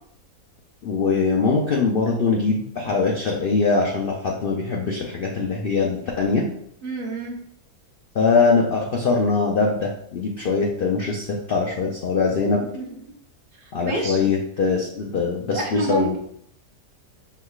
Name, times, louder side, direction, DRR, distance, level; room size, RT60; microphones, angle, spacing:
voice 1, 0.8-6.5 8.1-12.6 13.7-16.2, left 4 dB, 70° left, -1 dB, 0.5 m, -22 dB
voice 2, 6.8-7.4 12.7-12.8 13.6-14.3 15.5-16.2, right 2 dB, 45° right, -1 dB, 0.9 m, -28 dB
5.7 x 3.2 x 2.4 m, 0.69 s
omnidirectional pair, 1.6 m